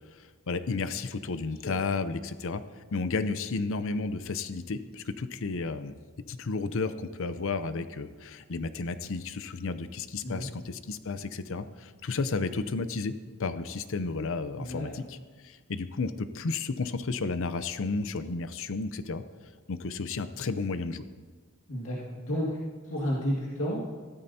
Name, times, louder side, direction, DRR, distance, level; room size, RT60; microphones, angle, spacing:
voice 1, 0.5-5.9 6.3-13.1 13.4-15.2 15.4-19.2 19.7-21.0, left 4 dB, 65° left, 12 dB, 0.6 m, -32 dB
voice 2, 14.6-14.9 21.7-22.6 22.8-23.8, equal, 80° left, -5 dB, 1.9 m, -31 dB
15.5 x 13.0 x 2.8 m, 1.4 s
head